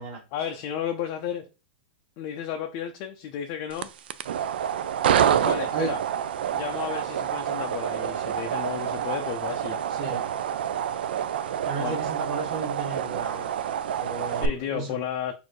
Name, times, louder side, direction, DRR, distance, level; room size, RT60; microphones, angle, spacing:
voice 1, 0.3-1.4 2.2-3.9 5.1-6.0 6.5-9.8 11.8-12.0 14.3-15.3, left 9 dB, 35° left, 0.4 m, -33 dB
sound 1, 3.7-14.5, right 9 dB, 80° right, 0.4 m, -27 dB
voice 2, 9.9-10.3 11.6-13.5 14.0-15.0, right 4 dB, 35° right, 1.4 m, -33 dB
4.3 x 2.6 x 4.7 m
supercardioid pair, 170°, 5 cm